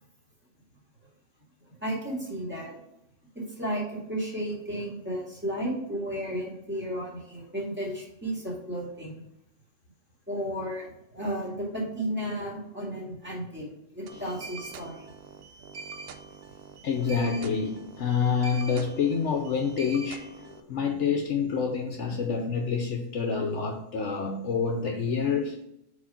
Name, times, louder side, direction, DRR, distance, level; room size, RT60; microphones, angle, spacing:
voice 1, 1.8-2.8 3.3-9.2 10.3-13.7 13.9-15.0, equal, 10° right, -4 dB, 2.1 m, -33 dB
sound 1, 14.1-20.6, right 4 dB, 60° right, 0.7 m, -44 dB
voice 2, 16.8-25.6, left 6 dB, 65° left, 3 dB, 1.0 m, -28 dB
4.8 x 4.2 x 5.8 m, 0.80 s
omnidirectional pair, 1.3 m